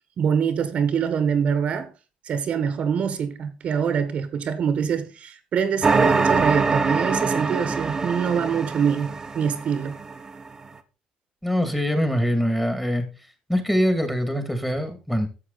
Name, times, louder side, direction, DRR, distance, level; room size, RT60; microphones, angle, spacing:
voice 1, 0.2-1.9 2.3-10.0, right 7 dB, 55° right, 1.4 m, -24 dB
sound 1, 5.8-10.3, right 4 dB, 25° right, 1.1 m, -23 dB
voice 2, 11.4-13.1 13.5-15.3, equal, 5° left, 2.4 m, -23 dB
11.5 x 7.4 x 4.2 m
cardioid pair, 105°, 3 cm